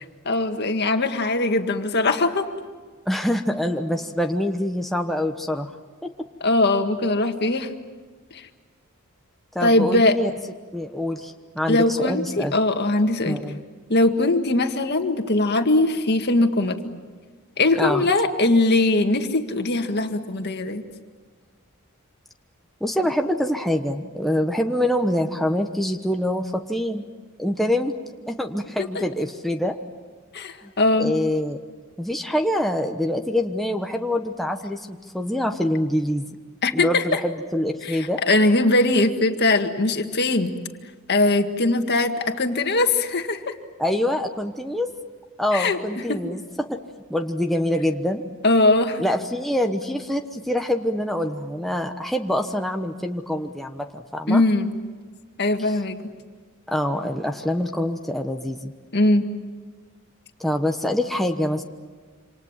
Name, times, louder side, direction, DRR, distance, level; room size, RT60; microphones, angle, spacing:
voice 1, 0.3-2.4 6.4-7.7 8.3-8.4 9.6-10.2 11.7-13.4 13.9-17.0 17.6-20.8 28.8-29.0 30.3-31.1 36.6-37.2 37.8-40.5 41.1-43.5 45.5-45.8 46.1-46.2 48.4-49.0 54.3-54.7 55.4-56.0 58.9-59.2, left 2 dB, 50° left, 6 dB, 1.9 m, -21 dB
voice 2, 3.1-5.7 6.0-6.1 9.5-10.3 10.7-12.5 13.2-13.6 17.8-18.0 22.8-27.0 27.4-27.9 28.3-29.7 30.6-30.7 31.0-31.6 32.0-36.4 36.7-38.2 43.8-44.9 45.4-46.8 47.1-48.3 49.0-54.4 55.6-55.8 56.7-58.7 60.4-61.6, left 1 dB, ahead, 3 dB, 1.1 m, -25 dB
27.5 x 26.5 x 7.4 m, 1.5 s
head